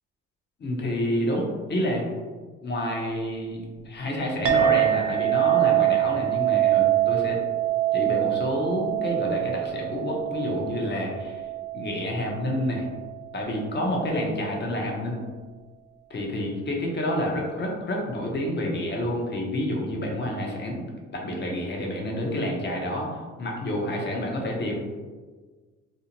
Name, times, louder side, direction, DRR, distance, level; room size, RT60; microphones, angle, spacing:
voice 1, 0.6-2.0 2.6-7.4 7.9-11.4 11.7-12.9 13.3-15.2 16.1-23.1 23.4-24.8, left 1 dB, 35° left, -1 dB, 0.7 m, -28 dB
Chink clink, 4.4-13.2, right 14 dB, 50° right, 0.5 m, -25 dB
2.6 x 2.1 x 2.8 m, 1.4 s
cardioid pair, 90°, 30 cm